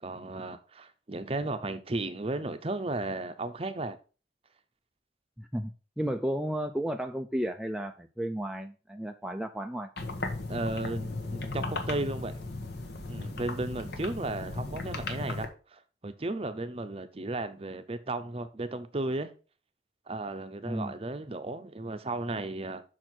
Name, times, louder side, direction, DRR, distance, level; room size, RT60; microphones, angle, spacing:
voice 1, 0.0-4.0 10.5-12.4 13.1-19.3 20.1-22.8, right 2 dB, 30° right, 0.7 m, -35 dB
voice 2, 5.4-9.9 20.7-20.9, equal, 5° right, 0.4 m, -33 dB
sound 1, 10.0-15.5, left 2 dB, 60° left, 1.2 m, -36 dB
6.1 x 4.5 x 6.1 m
head